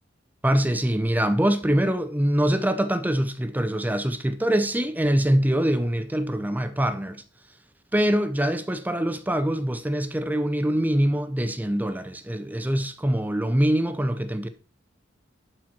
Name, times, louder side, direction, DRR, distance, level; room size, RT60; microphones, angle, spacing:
voice 1, 0.4-7.2 7.9-14.5, right 1 dB, 10° right, 0.7 m, -24 dB
12.0 x 4.5 x 6.1 m
head